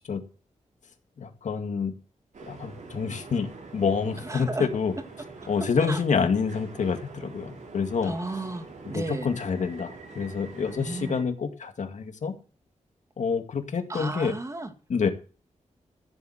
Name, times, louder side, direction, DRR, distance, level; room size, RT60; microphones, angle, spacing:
voice 1, 1.2-1.9 2.5-4.9 5.5-8.1 8.9-12.3 13.2-14.3 14.9-15.1, left 5 dB, 75° left, 2.1 m, -27 dB
sound 1, 2.3-11.2, right 3 dB, 80° right, 4.6 m, -45 dB
voice 2, 4.2-4.7 5.9-6.0 8.0-9.3 10.7-11.2 13.9-14.7, right 2 dB, 25° right, 2.1 m, -33 dB
15.0 x 7.3 x 7.7 m
wide cardioid pair, 115°, 12 cm